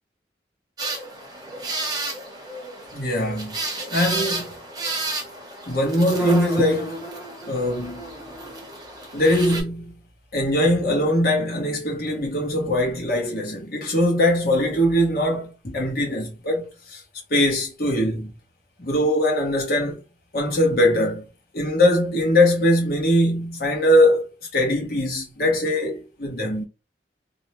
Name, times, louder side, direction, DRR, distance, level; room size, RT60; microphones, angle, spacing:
sound 1, 0.8-9.6, right 2 dB, 20° right, 0.7 m, -31 dB
voice 1, 2.9-4.5 5.7-7.1 7.5-8.2 9.1-10.0 10.3-17.0 17.3-18.3 18.8-20.0 20.3-21.3 21.5-26.6, left 1 dB, 55° left, 0.9 m, -21 dB
2.5 x 2.1 x 2.9 m
head